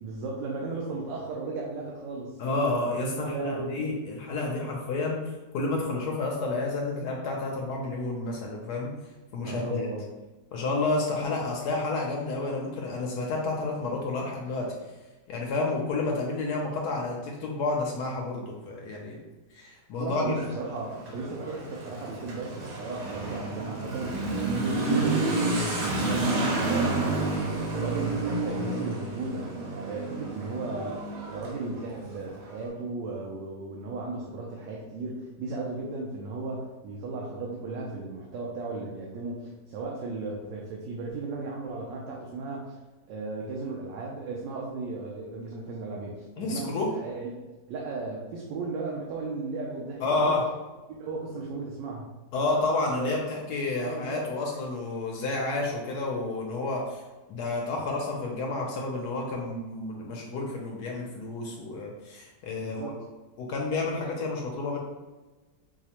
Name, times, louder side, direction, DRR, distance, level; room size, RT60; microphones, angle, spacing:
voice 1, 0.0-2.4 3.1-3.9 9.4-10.0 20.0-24.2 24.5-27.0 27.8-42.7 43.1-47.3 47.7-50.4 50.9-52.1 52.9-53.2 53.8-54.2 62.6-63.0, right 3 dB, 85° right, -2 dB, 1.3 m, -35 dB
voice 2, 2.4-8.9 9.3-9.9 10.5-14.7 15.3-19.2 19.5-20.4 46.4-46.9 50.0-50.4 52.3-57.0 57.3-62.9 63.4-64.8, left 3 dB, 70° left, -1 dB, 1.1 m, -30 dB
Motorcycle / Accelerating revving vroom, 20.2-32.6, right 2 dB, 60° right, 1.1 m, -30 dB
4.8 x 2.0 x 2.8 m, 1.2 s
omnidirectional pair, 1.9 m